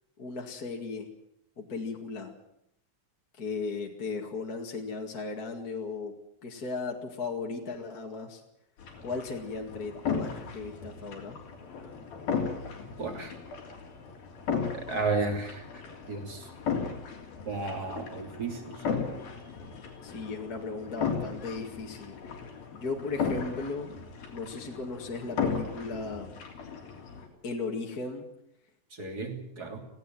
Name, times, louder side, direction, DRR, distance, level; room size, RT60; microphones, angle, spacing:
voice 1, 0.2-1.1 1.6-2.3 3.4-6.1 6.4-8.4 9.0-11.4 20.0-22.4 22.7-23.9 24.3-26.3 27.4-28.3, left 4 dB, 30° left, 1 dB, 2.1 m, -36 dB
sound 1, 8.8-27.3, left 6 dB, 90° left, 5.2 m, -36 dB
voice 2, 13.0-13.3 14.7-15.8 16.1-16.5 17.4-18.8 28.9-29.8, right 3 dB, 30° right, 4 dB, 3.2 m, -33 dB
18.5 x 17.0 x 9.2 m, 0.78 s
omnidirectional pair, 4.1 m